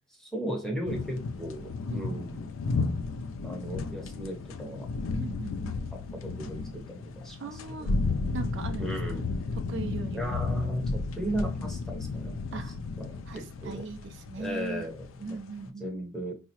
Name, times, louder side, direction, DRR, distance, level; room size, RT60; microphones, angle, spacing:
voice 1, 0.2-2.5 3.4-4.9 5.9-7.9 8.8-9.3 10.1-12.6 13.0-13.8 14.3-15.4 15.6-16.3, equal, ahead, 0 dB, 0.7 m, -36 dB
sound 1, 0.9-15.7, left 3 dB, 80° left, 0.4 m, -33 dB
voice 2, 1.9-2.3 5.2-5.8 7.4-8.0 8.3-9.2 9.7-10.3 12.5-12.8 13.3-14.9 15.2-15.9, right 3 dB, 60° right, 8 dB, 0.4 m, -39 dB
4.6 x 2.0 x 2.8 m, 0.32 s
head